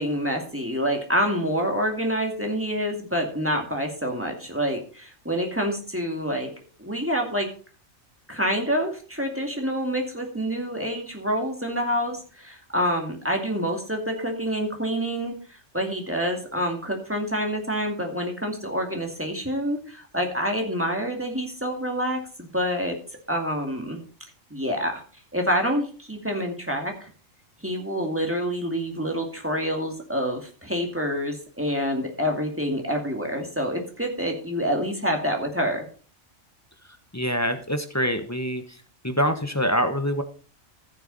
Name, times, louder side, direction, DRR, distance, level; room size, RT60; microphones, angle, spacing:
voice 1, 0.0-6.5 6.8-7.5 8.3-22.9 23.3-24.0 24.5-25.0 25.3-27.1 27.6-35.9, equal, 10° right, 2 dB, 2.3 m, -27 dB
voice 2, 37.1-40.2, equal, 15° left, 7 dB, 1.0 m, -25 dB
15.5 x 6.7 x 4.0 m, 0.39 s
omnidirectional pair, 1.3 m